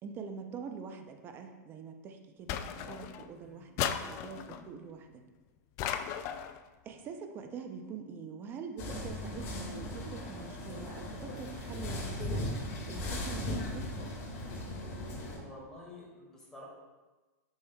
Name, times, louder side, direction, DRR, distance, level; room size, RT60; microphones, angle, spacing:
voice 1, 0.0-5.2 6.8-12.5 12.9-13.9, right 5 dB, 25° right, 5 dB, 0.6 m, -44 dB
sound 1, 2.5-3.3 3.8-4.7 5.8-6.6, left 9 dB, 30° left, 0.3 m, -35 dB
voice 2, 3.4-3.8 15.3-16.6, left 2 dB, 5° left, -5 dB, 1.9 m, -50 dB
sound 2, 8.8-15.4, left 1 dB, 50° left, 2.1 m, -38 dB
8.6 x 6.2 x 2.3 m, 1.2 s
supercardioid pair, 155°, 9 cm